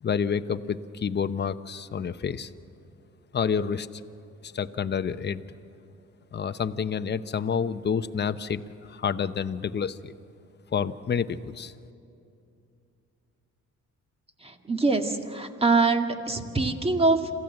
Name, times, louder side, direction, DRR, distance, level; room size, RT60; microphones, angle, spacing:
voice 1, 0.0-2.5 3.3-3.9 4.4-5.4 6.3-8.6 8.9-10.1 10.7-11.7, left 6 dB, 35° left, 11 dB, 0.8 m, -28 dB
voice 2, 14.4-17.3, right 3 dB, 20° right, 5 dB, 1.9 m, -24 dB
27.0 x 15.5 x 7.7 m, 2.7 s
cardioid pair, 90°, 30 cm